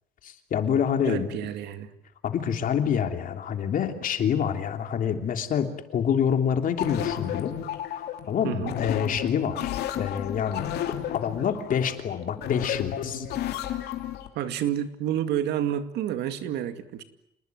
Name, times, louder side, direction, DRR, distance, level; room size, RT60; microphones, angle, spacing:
voice 1, 0.2-1.3 2.2-7.5 8.3-10.7 11.1-13.3, left 8 dB, 55° left, 6 dB, 3.2 m, -27 dB
voice 2, 1.0-1.9 8.4-8.8 14.3-17.0, right 10 dB, 80° right, 10 dB, 2.3 m, -29 dB
sound 1, 6.8-14.3, left 10 dB, 75° left, 3.0 m, -32 dB
28.0 x 20.0 x 9.6 m, 0.80 s
cardioid pair, 110°, 17 cm